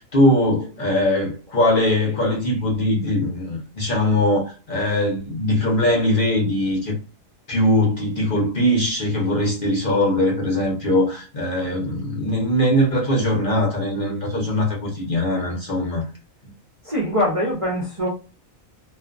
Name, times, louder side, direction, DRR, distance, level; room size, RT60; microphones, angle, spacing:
voice 1, 0.0-6.9 7.5-16.0, left 1 dB, 45° left, 0.9 m, -21 dB
voice 2, 16.8-18.1, equal, 30° right, 0.7 m, -23 dB
2.5 x 2.3 x 2.4 m
omnidirectional pair, 1.4 m